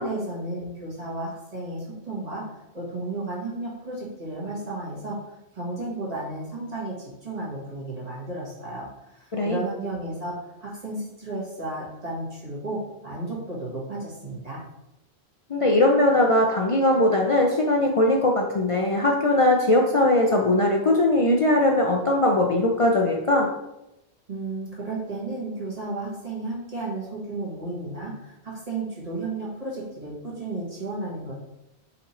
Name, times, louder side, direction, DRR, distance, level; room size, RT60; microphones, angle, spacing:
voice 1, 0.0-2.4 2.7-5.2 5.5-14.6 24.3-31.4, right 2 dB, 35° right, -5 dB, 1.4 m, -33 dB
voice 2, 9.3-9.6 15.5-23.5, left 1 dB, 55° left, 0 dB, 0.4 m, -20 dB
4.2 x 2.7 x 4.1 m, 0.90 s
omnidirectional pair, 1.1 m